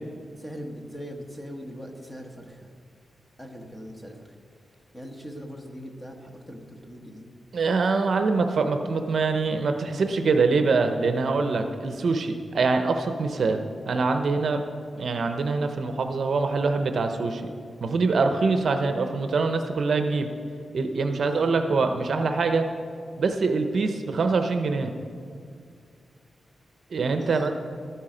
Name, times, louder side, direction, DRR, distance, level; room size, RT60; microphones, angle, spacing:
voice 1, 0.4-2.7 3.4-4.3 4.9-7.3 18.3-18.4 21.1-21.3 27.2-27.5, equal, 10° left, 2 dB, 1.1 m, -40 dB
voice 2, 7.5-14.7 15.0-17.5 17.8-20.3 20.7-22.6 23.2-24.9 26.9-27.5, right 4 dB, 50° right, 6 dB, 0.7 m, -24 dB
12.5 x 10.0 x 5.0 m, 2.3 s
wide cardioid pair, 175°, 0 cm